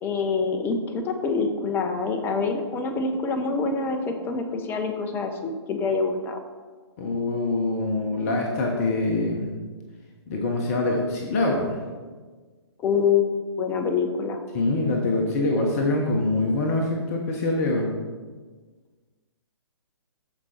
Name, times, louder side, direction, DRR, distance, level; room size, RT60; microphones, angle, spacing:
voice 1, 0.0-6.4 12.8-13.3 13.6-14.4, left 5 dB, 15° left, 5 dB, 0.9 m, -26 dB
voice 2, 7.0-9.5 10.3-11.8 14.5-17.9, left 2 dB, 35° left, 0 dB, 1.3 m, -24 dB
13.5 x 5.3 x 4.4 m, 1.4 s
figure-of-eight pair, 130°, 14 cm